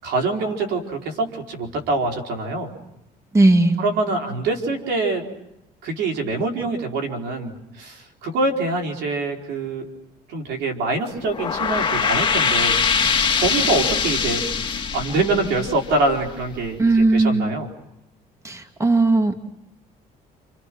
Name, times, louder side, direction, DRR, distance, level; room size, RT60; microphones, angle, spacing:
voice 1, 0.0-2.7 3.8-5.2 5.8-9.9 10.3-12.8 13.3-17.7, right 3 dB, 85° right, 3 dB, 4.6 m, -25 dB
voice 2, 3.3-3.8 16.8-17.5 18.4-19.4, right 2 dB, 15° right, 6 dB, 2.3 m, -17 dB
sound 1, 11.2-16.4, left 6 dB, 30° left, 1.9 m, -22 dB
30.0 x 29.0 x 6.2 m, 0.82 s
cardioid pair, 110°, 17 cm